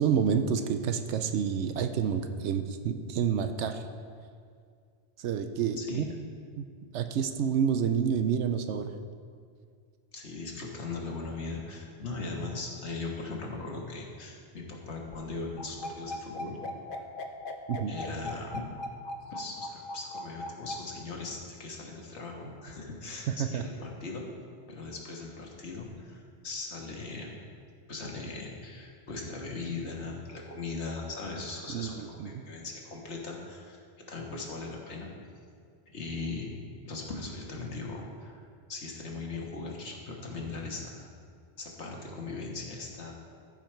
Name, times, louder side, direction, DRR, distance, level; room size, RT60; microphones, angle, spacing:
voice 1, 0.0-3.8 5.2-6.1 6.6-6.7 6.9-8.9 17.7-17.9 23.3-23.6 31.7-32.3, right 7 dB, 80° right, 8 dB, 0.9 m, -29 dB
voice 2, 10.1-16.6 17.9-18.7 19.3-24.3 24.7-27.3 27.9-33.8 34.1-35.1 35.9-36.5 36.9-38.4 38.7-41.1 41.6-43.1, left 3 dB, 75° left, -1 dB, 1.7 m, -39 dB
sound 1, 15.6-20.8, left 1 dB, 55° left, 0.8 m, -38 dB
14.5 x 5.0 x 4.5 m, 2.2 s
omnidirectional pair, 1.2 m